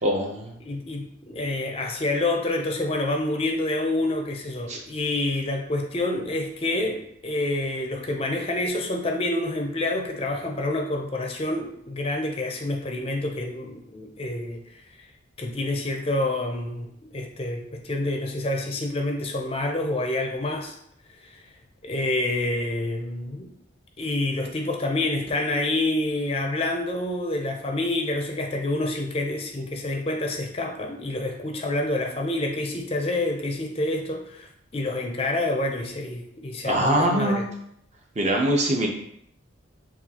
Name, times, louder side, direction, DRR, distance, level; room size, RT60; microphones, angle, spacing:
voice 1, 0.0-0.5 4.7-4.8 36.6-37.4 38.2-38.9, right 1 dB, 35° right, 1 dB, 0.6 m, -23 dB
voice 2, 0.6-14.8 15.4-20.8 21.2-21.4 21.8-23.5 24.0-37.4, left 2 dB, 30° left, 2 dB, 0.5 m, -28 dB
6.8 x 2.4 x 2.8 m, 0.73 s
head